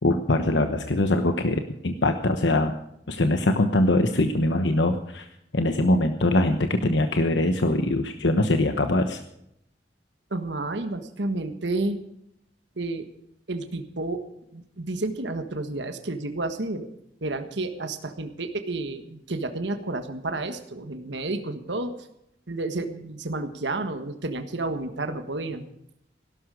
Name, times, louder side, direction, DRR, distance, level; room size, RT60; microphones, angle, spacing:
voice 1, 0.0-2.7 3.1-5.3 5.5-9.2, left 1 dB, 80° left, 7 dB, 1.1 m, -22 dB
voice 2, 10.3-12.0 12.8-13.1 13.5-14.2 14.5-16.9 17.2-21.9 22.5-25.7, right 2 dB, 80° right, 8 dB, 1.5 m, -31 dB
17.0 x 12.5 x 5.0 m, 0.77 s
head